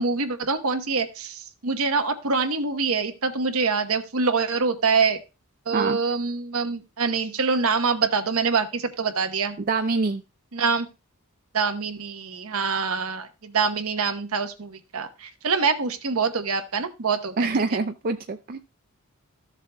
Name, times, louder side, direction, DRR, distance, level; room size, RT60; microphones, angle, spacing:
voice 1, 0.0-5.2 5.7-9.6 10.5-10.9 11.5-17.8, right 5 dB, 70° right, 7 dB, 1.0 m, -25 dB
voice 2, 9.7-10.2 17.4-18.6, right 3 dB, 40° right, 7 dB, 0.5 m, -25 dB
14.0 x 7.3 x 2.3 m, 0.29 s
head